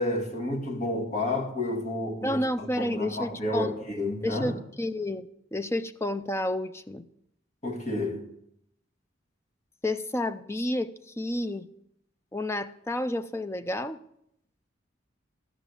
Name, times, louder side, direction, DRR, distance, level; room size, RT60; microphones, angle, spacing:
voice 1, 0.0-4.6 7.6-8.2, left 1 dB, 40° left, 1.7 m, -30 dB
voice 2, 2.2-3.7 4.2-7.0 9.8-11.7 12.3-14.0, left 1 dB, 15° left, 0.5 m, -30 dB
14.5 x 6.1 x 8.3 m
head